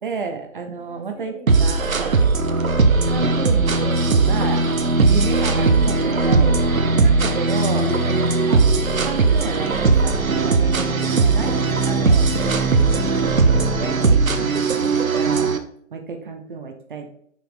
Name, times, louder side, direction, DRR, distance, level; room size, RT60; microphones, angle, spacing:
voice 1, 0.0-1.3 1.6-2.2 3.1-4.6 5.1-6.6 7.0-7.9 8.5-8.6 9.0-11.6 11.9-12.5 13.0-13.9 14.4-15.5 15.9-17.1, right 5 dB, 40° right, 5 dB, 0.7 m, -31 dB
voice 2, 0.7-1.5 1.8-2.3 4.7-5.0 6.0-6.8 7.8-8.3 11.9-13.0 13.4-14.2, left 1 dB, 60° left, 0 dB, 2.3 m, -39 dB
sound 1, 1.5-15.6, right 3 dB, 90° right, 0.8 m, -18 dB
5.8 x 4.2 x 4.0 m, 0.66 s
figure-of-eight pair, 140°, 40 cm